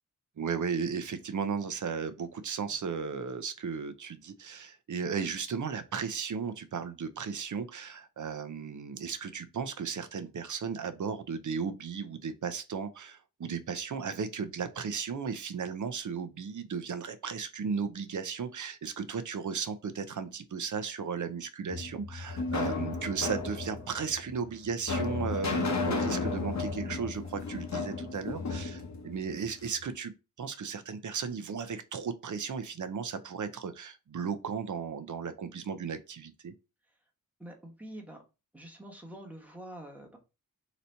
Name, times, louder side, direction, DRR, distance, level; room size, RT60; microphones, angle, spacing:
voice 1, 0.4-30.1 30.4-36.5, right 6 dB, 60° right, 0.6 m, -35 dB
sound 1, 21.7-29.8, left 4 dB, 50° left, 0.9 m, -34 dB
voice 2, 37.4-38.2 38.5-40.2, right 1 dB, 5° right, 1.1 m, -46 dB
4.0 x 2.8 x 4.4 m
wide cardioid pair, 125°, 35 cm